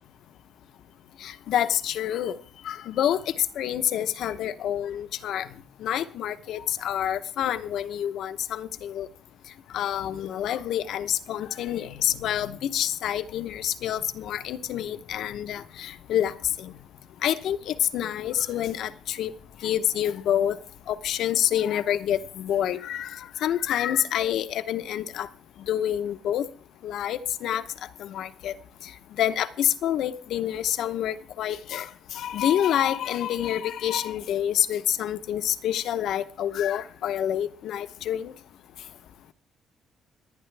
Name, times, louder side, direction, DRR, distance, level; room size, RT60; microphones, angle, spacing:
voice 1, 1.2-2.4 2.6-5.5 5.8-9.1 9.7-16.3 16.6-16.7 17.2-19.3 19.6-20.6 20.9-25.3 25.7-26.5 26.8-27.6 28.0-28.5 29.2-38.3, left 10 dB, 75° left, 12 dB, 0.8 m, -27 dB
26.0 x 10.0 x 3.3 m, 0.43 s
cardioid pair, 140°, 0 cm